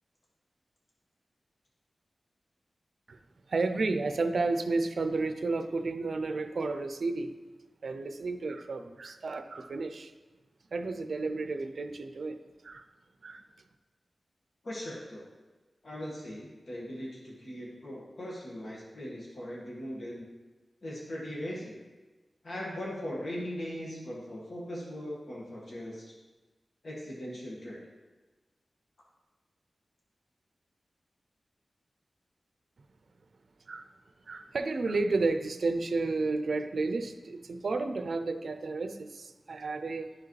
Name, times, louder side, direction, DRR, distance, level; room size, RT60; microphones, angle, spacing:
voice 1, 3.5-7.3 7.8-10.1 10.7-12.9 13.2-13.4 33.7-33.9 34.3-40.1, right 3 dB, 70° right, 8 dB, 0.5 m, -32 dB
voice 2, 14.6-15.2 15.8-20.2 20.8-21.7 22.4-26.1 26.8-27.8, equal, 50° left, -4 dB, 1.6 m, -39 dB
11.5 x 4.8 x 3.2 m, 1.2 s
wide cardioid pair, 120°, 0 cm